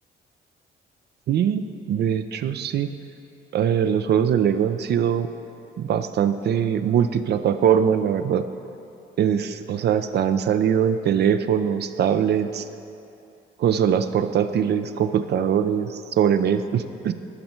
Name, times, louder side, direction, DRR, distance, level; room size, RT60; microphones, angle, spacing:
voice 1, 1.3-2.9 3.5-5.3 5.8-8.4 9.2-12.7 13.6-17.1, right 8 dB, 60° right, 10 dB, 0.4 m, -22 dB
12.0 x 5.5 x 4.4 m, 2.7 s
cardioid pair, 90°, 20 cm